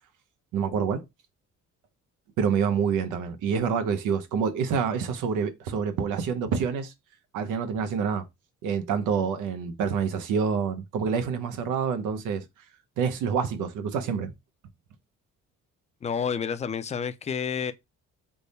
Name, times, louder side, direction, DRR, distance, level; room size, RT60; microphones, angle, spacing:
voice 1, 0.5-1.0 2.4-6.9 7.3-8.3 8.6-12.4 13.0-14.3, right 6 dB, 90° right, 0.7 m, -27 dB
voice 2, 16.0-17.7, left 7 dB, 25° left, 0.4 m, -29 dB
3.4 x 2.2 x 3.9 m
cardioid pair, 90°, 30 cm